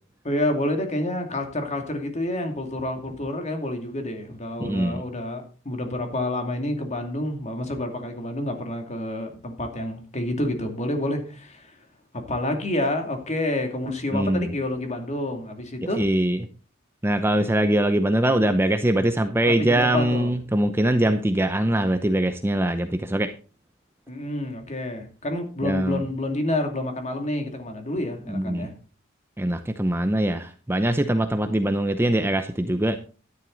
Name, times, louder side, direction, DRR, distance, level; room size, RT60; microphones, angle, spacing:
voice 1, 0.2-11.7 12.1-16.0 19.6-20.3 24.1-28.7, left 1 dB, 35° left, 5 dB, 2.6 m, -28 dB
voice 2, 4.6-5.0 14.1-14.5 16.0-16.5 17.0-23.3 25.6-26.0 28.3-28.7 29.4-33.0, right 1 dB, 10° right, 8 dB, 0.7 m, -22 dB
12.5 x 10.5 x 3.9 m, 0.36 s
head